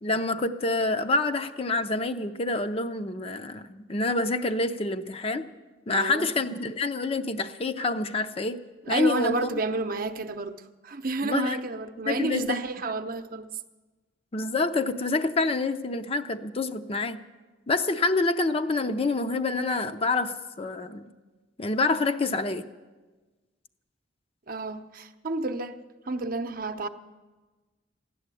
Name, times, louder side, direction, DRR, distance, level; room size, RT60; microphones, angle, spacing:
voice 1, 0.0-5.5 5.9-8.6 8.9-9.6 11.2-11.6 12.1-12.6 14.3-17.2 17.7-21.1 21.6-22.6, left 3 dB, 30° left, 0.6 m, -27 dB
voice 2, 5.9-6.3 8.8-13.5 24.5-25.8 26.0-26.9, right 3 dB, 50° right, 0.7 m, -30 dB
15.5 x 10.5 x 8.3 m
head